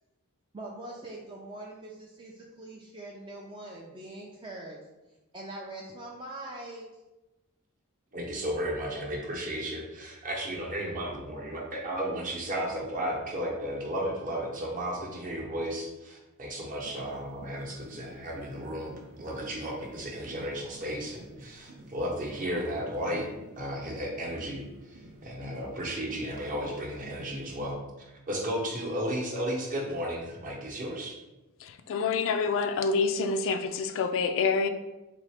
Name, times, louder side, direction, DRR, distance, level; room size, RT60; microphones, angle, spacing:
voice 1, 0.5-4.8 5.3-6.8, right 2 dB, 20° right, -2 dB, 0.4 m, -42 dB
voice 2, 8.1-31.1, equal, 35° right, -1 dB, 0.8 m, -34 dB
sound 1, 16.7-27.7, right 1 dB, 70° right, 0.6 m, -51 dB
voice 3, 31.6-34.7, left 4 dB, 60° left, 8 dB, 0.3 m, -27 dB
3.7 x 3.1 x 3.4 m, 1.0 s
head